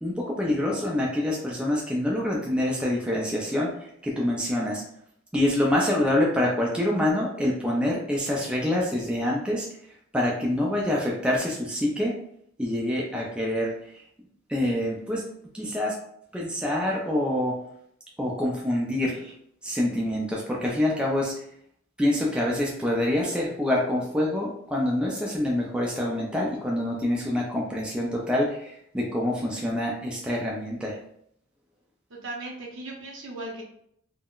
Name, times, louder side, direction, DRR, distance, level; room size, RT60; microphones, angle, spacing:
voice 1, 0.0-4.8 5.3-9.7 10.1-12.1 12.6-13.7 14.5-15.2 15.5-15.9 16.3-17.6 18.2-19.3 19.6-21.3 22.0-31.0, left 1 dB, 5° right, -3 dB, 0.3 m, -26 dB
voice 2, 32.1-33.6, right 2 dB, 60° right, -1 dB, 0.7 m, -38 dB
3.6 x 2.1 x 2.3 m, 0.70 s
head